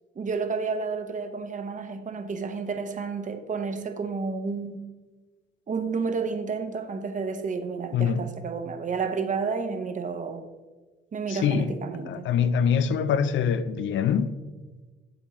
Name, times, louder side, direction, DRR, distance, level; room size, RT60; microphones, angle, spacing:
voice 1, 0.2-4.9 5.7-10.4 11.1-12.3, right 5 dB, 40° right, 0.8 m, -31 dB
voice 2, 7.9-8.3 11.3-11.7 12.1-14.3, left 7 dB, 70° left, 0.5 m, -24 dB
8.0 x 7.8 x 3.0 m
cardioid pair, 90°, 20 cm